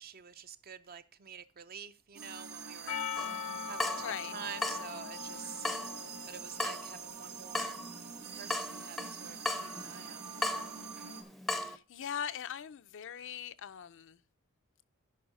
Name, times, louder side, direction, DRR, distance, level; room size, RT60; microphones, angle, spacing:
voice 1, 0.0-7.8 8.3-10.7, right 7 dB, 45° right, 0.6 m, -48 dB
sound 1, 2.1-11.2, right 6 dB, 85° right, 1.6 m, -45 dB
Percussion, 2.9-7.2, left 9 dB, 80° left, 0.8 m, -42 dB
Water tap faucet / Drip, 3.2-11.8, left 2 dB, ahead, 0.6 m, -39 dB
voice 2, 4.0-4.3 11.6-14.2, left 9 dB, 60° left, 0.5 m, -41 dB
11.0 x 5.4 x 4.8 m
head